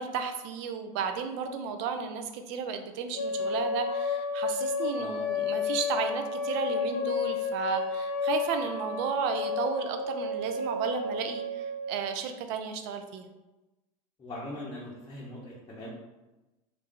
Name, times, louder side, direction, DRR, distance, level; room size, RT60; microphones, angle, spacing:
voice 1, 0.0-13.3, right 6 dB, 60° right, 6 dB, 0.5 m, -33 dB
sound 1, 3.1-12.1, left 4 dB, 75° left, 0.5 m, -31 dB
voice 2, 14.2-15.9, left 1 dB, 20° left, -6 dB, 0.7 m, -41 dB
3.2 x 2.4 x 3.7 m, 1.1 s
supercardioid pair, 120°, 19 cm